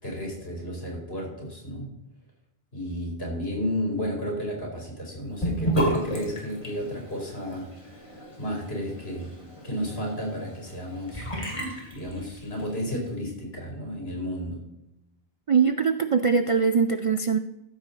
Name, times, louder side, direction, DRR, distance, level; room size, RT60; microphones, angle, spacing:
voice 1, 0.0-1.9 2.7-9.3 9.6-11.3 11.9-14.6, equal, 75° left, -1 dB, 3.5 m, -32 dB
Sink (filling or washing) / Bathtub (filling or washing), 5.4-12.7, right 1 dB, 30° left, 2.4 m, -32 dB
voice 2, 15.5-17.4, right 5 dB, 55° right, 9 dB, 0.3 m, -22 dB
14.0 x 6.5 x 4.0 m, 0.88 s
omnidirectional pair, 1.0 m